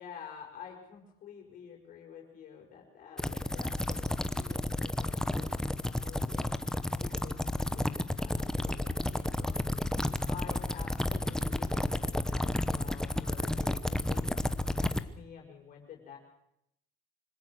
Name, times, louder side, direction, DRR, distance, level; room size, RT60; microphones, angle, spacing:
voice 1, 0.0-9.7 10.0-16.2, left 7 dB, 45° left, 0 dB, 6.1 m, -50 dB
sound 1, 3.2-15.0, left 1 dB, 5° left, 1.0 m, -31 dB
25.5 x 17.5 x 6.5 m, 0.79 s
cardioid pair, 120°, 19 cm